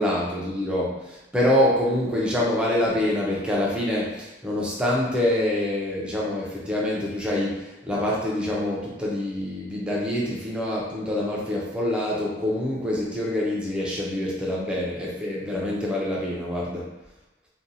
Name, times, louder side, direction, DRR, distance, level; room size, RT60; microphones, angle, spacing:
voice 1, 0.0-16.9, left 1 dB, 5° right, -5 dB, 0.5 m, -26 dB
2.7 x 2.2 x 2.5 m, 0.97 s
head